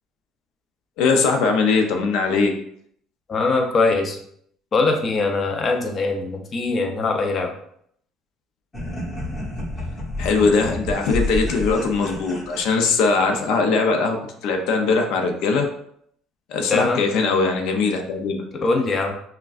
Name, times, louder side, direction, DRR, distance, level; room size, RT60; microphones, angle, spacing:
voice 1, 1.0-2.5 10.2-14.2 14.4-15.6 16.5-18.4, left 4 dB, 75° left, 3 dB, 0.6 m, -20 dB
voice 2, 3.3-4.2 4.7-7.5 16.7-17.0 18.6-19.1, left 3 dB, 35° left, 3 dB, 0.6 m, -22 dB
sound 1, 8.7-13.5, left 2 dB, 15° left, 1.1 m, -30 dB
5.7 x 2.2 x 2.5 m, 0.68 s
cardioid pair, 115°, 0 cm